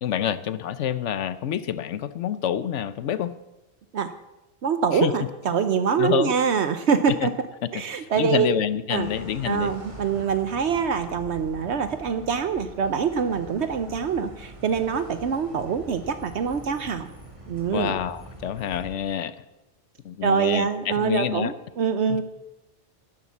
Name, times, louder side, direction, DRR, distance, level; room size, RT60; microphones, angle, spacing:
voice 1, 0.0-3.3 4.9-5.1 6.0-6.3 7.1-7.3 7.9-9.7 17.7-19.3 20.0-21.5 22.1-22.2, left 10 dB, 90° left, 14 dB, 1.1 m, -27 dB
voice 2, 4.6-7.3 7.7-8.5 8.9-9.1 9.4-17.1 17.5-17.9 20.2-22.2, right 6 dB, 70° right, 10 dB, 1.0 m, -24 dB
sound 1, 8.9-18.9, right 1 dB, 30° right, 2.4 m, -43 dB
12.0 x 10.5 x 7.2 m, 0.96 s
omnidirectional pair, 1.2 m